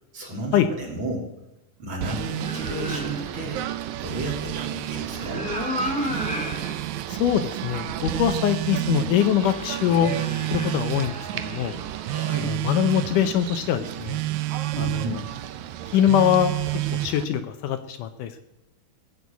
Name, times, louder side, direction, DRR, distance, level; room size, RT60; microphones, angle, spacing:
voice 1, 0.1-1.3 1.8-3.6 4.0-5.5 12.0-12.5 14.7-15.2, right 2 dB, 40° right, 0 dB, 3.0 m, -32 dB
Singing / Bird, 2.0-17.2, right 12 dB, 75° right, 1.9 m, -34 dB
Telephone, 2.0-3.1 3.9-5.1 6.0-7.1 8.1-9.2 10.1-11.2 12.0-13.1 14.1-15.2 16.1-17.2, right 17 dB, 90° right, 2.4 m, -30 dB
sound 1, 2.4-3.5 5.0-6.8 7.3-7.4 9.3-11.9, left 1 dB, 5° left, 2.0 m, -33 dB
voice 2, 7.1-10.1 10.5-11.8 12.4-14.2 14.8-15.2 15.9-16.5 16.9-18.4, left 10 dB, 75° left, 9 dB, 2.2 m, -23 dB
17.5 x 7.0 x 8.2 m, 0.93 s
omnidirectional pair, 3.9 m